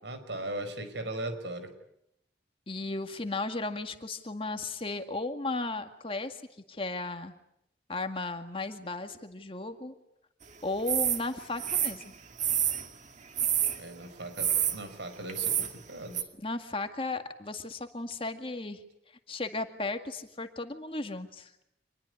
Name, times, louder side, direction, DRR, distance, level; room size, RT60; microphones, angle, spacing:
voice 1, 0.0-1.7 13.8-16.3, right 1 dB, 85° right, 9 dB, 5.4 m, -38 dB
voice 2, 2.7-6.4 6.7-7.3 7.9-9.9 10.6-12.1 16.4-18.8 19.3-21.5, left 2 dB, 30° left, 7 dB, 2.0 m, -35 dB
sound 1, 10.9-11.2 11.6-12.9 13.4-13.8 14.4-14.8 15.3-15.7 16.1-16.2, right 10 dB, 40° right, 2.1 m, -28 dB
27.0 x 21.0 x 9.6 m, 0.79 s
head